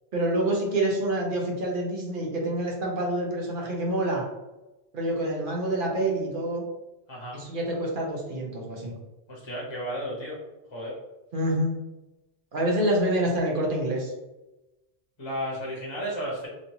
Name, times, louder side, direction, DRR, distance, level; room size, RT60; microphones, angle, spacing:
voice 1, 0.1-4.2 4.9-6.6 7.3-8.9 11.3-11.8 12.5-14.1, right 1 dB, 55° right, -2 dB, 0.9 m, -27 dB
voice 2, 9.3-10.4 10.7-11.0 15.2-16.5, equal, 30° left, -4 dB, 0.8 m, -33 dB
3.0 x 2.5 x 2.7 m, 1.0 s
omnidirectional pair, 1.1 m